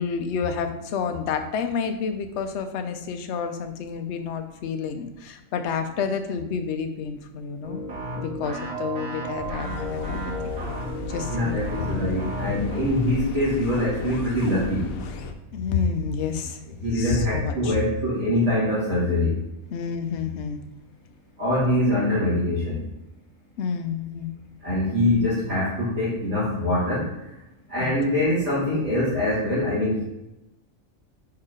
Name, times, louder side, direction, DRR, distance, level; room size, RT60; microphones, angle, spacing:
voice 1, 0.0-7.8 8.2-10.2 11.1-11.5 11.8-12.0 15.5-16.6 16.9-17.8 19.7-20.6 23.6-24.3 27.8-27.9, left 6 dB, 60° left, 7 dB, 0.9 m, -29 dB
sound 1, 7.6-12.9, right 1 dB, 85° right, 2.7 m, -33 dB
sound 2, 9.4-15.3, left 4 dB, 85° left, 1.1 m, -34 dB
voice 2, 11.3-14.8 16.8-19.4 21.4-22.8 24.6-27.0 27.7-30.0, left 1 dB, 55° right, -11 dB, 2.4 m, -23 dB
4.7 x 4.7 x 4.9 m, 0.95 s
omnidirectional pair, 1.4 m